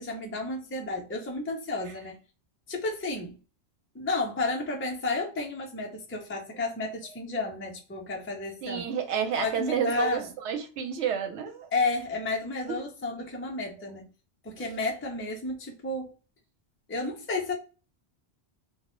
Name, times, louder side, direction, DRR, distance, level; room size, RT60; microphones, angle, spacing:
voice 1, 0.0-2.2 2.7-3.4 3.9-8.9 9.4-10.3 11.7-14.1 14.4-16.1 16.9-17.5, left 3 dB, 20° left, 0.3 m, -32 dB
voice 2, 8.6-11.7 12.7-12.8, right 7 dB, 80° right, 0.9 m, -30 dB
2.1 x 2.0 x 2.9 m
omnidirectional pair, 1.1 m